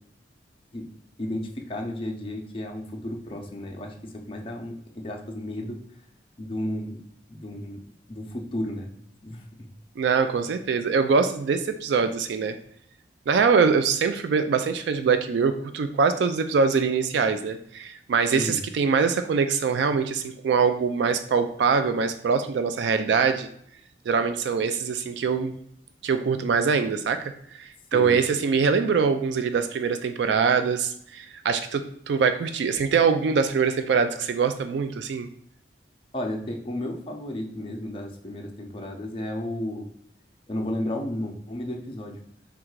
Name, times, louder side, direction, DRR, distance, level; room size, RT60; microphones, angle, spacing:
voice 1, 1.2-5.8 6.4-7.0 7.3-7.8 8.1-8.9 9.2-9.7 18.3-18.6 27.9-28.2 36.1-39.9 40.5-42.2, left 1 dB, 30° left, 1 dB, 0.5 m, -33 dB
voice 2, 10.0-12.6 13.3-23.5 24.1-25.5 26.0-35.3, right 5 dB, 80° right, 8 dB, 0.3 m, -23 dB
3.7 x 2.3 x 4.5 m, 0.68 s
head